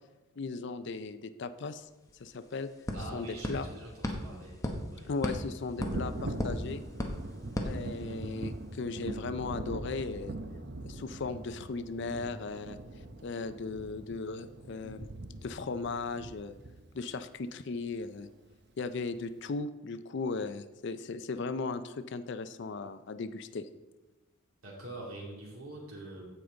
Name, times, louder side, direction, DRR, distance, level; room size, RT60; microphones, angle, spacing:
voice 1, 0.4-1.9 2.2-2.7 3.1-3.7 5.1-6.8 7.6-10.3 10.8-12.8 13.2-15.1 15.4-16.6 16.9-18.3 18.8-23.7, left 4 dB, 55° left, 11 dB, 0.5 m, -37 dB
sound 1, 1.7-1.8 2.1-8.5, equal, 15° left, 0.9 m, -38 dB
voice 2, 2.9-4.6 4.9-5.1 24.6-26.3, right 1 dB, 90° right, -2 dB, 2.8 m, -44 dB
Thunder, 5.8-17.2 18.5-18.6 19.1-19.2, right 2 dB, 50° right, 0.7 m, -42 dB
15.0 x 5.1 x 3.9 m, 1.1 s
head